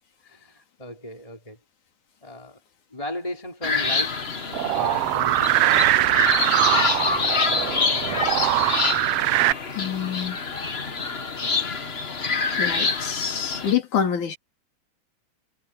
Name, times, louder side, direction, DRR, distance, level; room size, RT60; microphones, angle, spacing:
voice 1, 0.2-1.6 2.2-2.6 2.9-6.3, left 1 dB, 10° left, 3.7 m, -36 dB
sound 1, 3.6-13.7, left 4 dB, 35° left, 1.0 m, -26 dB
sound 2, 4.5-9.5, right 16 dB, 85° right, 1.3 m, -22 dB
voice 2, 9.8-10.4 12.6-14.4, left 8 dB, 90° left, 4.3 m, -26 dB
omnidirectional pair, 3.4 m